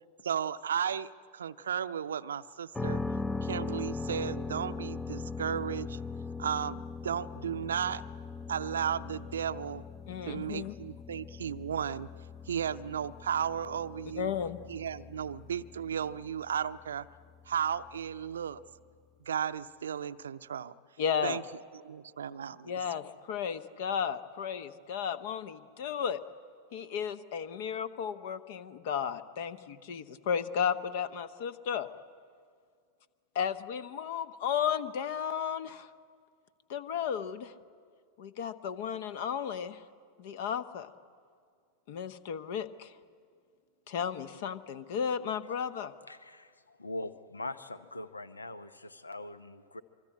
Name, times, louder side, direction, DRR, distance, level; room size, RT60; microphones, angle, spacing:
voice 1, 0.2-3.0 3.4-6.0 6.4-8.0 8.5-9.8 10.3-12.1 12.5-14.3 14.7-17.1 17.5-18.6 19.2-20.7 21.2-21.4 21.7-22.8, right 8 dB, 65° right, 13 dB, 0.6 m, -34 dB
sound 1, 2.7-18.6, left 4 dB, 10° left, 0.6 m, -40 dB
voice 2, 10.1-10.7 14.2-14.6 21.0-21.4 22.7-26.2 26.7-31.9 33.3-35.9 36.7-37.5 38.2-39.8 40.2-40.9 41.9-42.9 43.9-45.9, left 8 dB, 50° left, 14 dB, 1.0 m, -34 dB
voice 3, 46.1-49.8, left 2 dB, 80° left, 14 dB, 0.8 m, -42 dB
24.5 x 24.5 x 8.5 m, 2.1 s
figure-of-eight pair, 90°, 0 cm